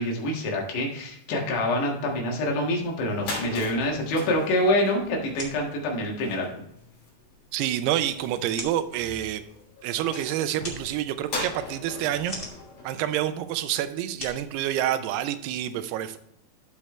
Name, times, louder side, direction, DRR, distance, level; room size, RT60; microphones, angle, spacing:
voice 1, 0.0-6.6, left 1 dB, 80° left, -1 dB, 3.8 m, -26 dB
sound 1, 3.1-13.8, left 2 dB, 50° left, 4.0 m, -40 dB
sound 2, 5.3-15.4, left 1 dB, 20° left, 1.7 m, -45 dB
voice 2, 7.5-9.4 9.8-12.4 12.8-16.2, right 12 dB, 80° right, 11 dB, 2.6 m, -28 dB
14.0 x 5.1 x 3.2 m, 0.75 s
omnidirectional pair, 4.8 m